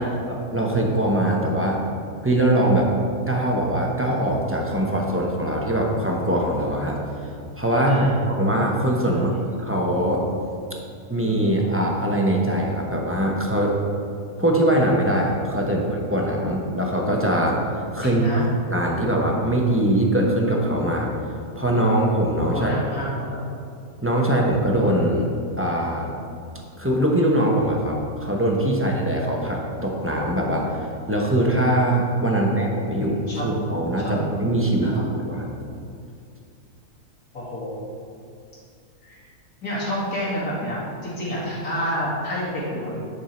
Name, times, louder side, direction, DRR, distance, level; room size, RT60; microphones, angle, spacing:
voice 1, 0.0-1.8 2.2-2.9 3.3-6.9 7.5-8.1 8.4-9.3 9.6-10.3 11.1-13.7 14.4-17.6 17.9-18.3 18.7-21.1 21.5-22.7 24.0-25.3 25.6-26.2 26.8-35.5, right 1 dB, 10° right, -2 dB, 0.8 m, -22 dB
voice 2, 7.8-8.3 9.1-9.4 18.0-18.5 22.5-23.4 32.3-33.5 34.0-34.2 34.8-35.1 37.3-37.8 39.0-39.2 39.6-43.0, equal, 75° left, -7 dB, 2.9 m, -29 dB
10.0 x 5.5 x 4.4 m, 2.4 s
omnidirectional pair, 1.6 m